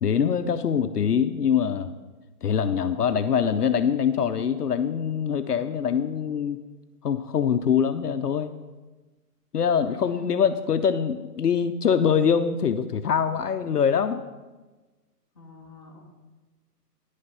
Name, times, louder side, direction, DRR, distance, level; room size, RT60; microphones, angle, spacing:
voice 1, 0.0-1.9 2.4-6.6 7.0-8.5 9.5-14.2, left 7 dB, 70° left, 9 dB, 0.7 m, -24 dB
voice 2, 9.9-10.3 15.3-16.0, left 3 dB, 15° left, -5 dB, 1.1 m, -47 dB
10.0 x 6.5 x 5.5 m, 1.2 s
hypercardioid pair, 165°, 49 cm